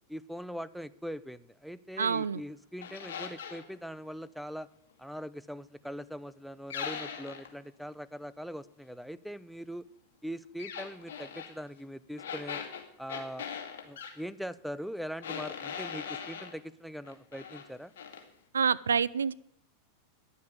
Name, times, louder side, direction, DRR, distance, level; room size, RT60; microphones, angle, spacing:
voice 1, 0.1-4.7 5.0-9.8 10.2-12.6 13.0-13.5 13.8-17.9, equal, ahead, 15 dB, 0.6 m, -41 dB
voice 2, 2.0-2.4 18.5-19.3, right 6 dB, 90° right, 19 dB, 0.4 m, -27 dB
sound 1, 2.8-3.7 6.7-7.5 10.6-11.5 12.2-14.2 15.2-16.6 17.0-17.7 18.0-18.2, left 7 dB, 70° left, 2.1 m, -40 dB
10.5 x 7.2 x 9.5 m, 0.71 s
hypercardioid pair, 100°, 0 cm